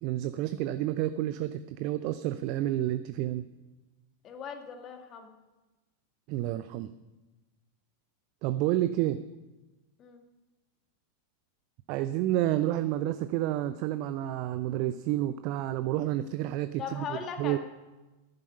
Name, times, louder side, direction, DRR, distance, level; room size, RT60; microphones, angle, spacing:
voice 1, 0.0-3.4 6.3-6.9 8.4-9.2 11.9-17.6, right 14 dB, 45° right, 12 dB, 0.5 m, -30 dB
voice 2, 4.2-5.3 10.0-10.2 16.8-17.6, left 7 dB, 30° left, 5 dB, 1.8 m, -39 dB
14.0 x 11.0 x 5.4 m, 1.1 s
figure-of-eight pair, 90°, 0 cm